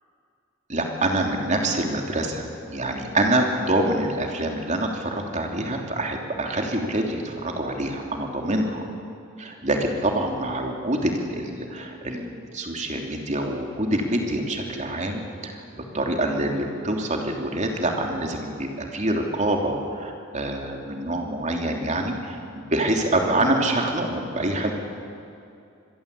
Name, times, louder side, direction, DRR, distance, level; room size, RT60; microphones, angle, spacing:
voice 1, 0.7-8.9 9.4-15.6 15.9-24.7, right 1 dB, 35° right, 2 dB, 3.2 m, -26 dB
26.5 x 21.5 x 8.6 m, 2.5 s
head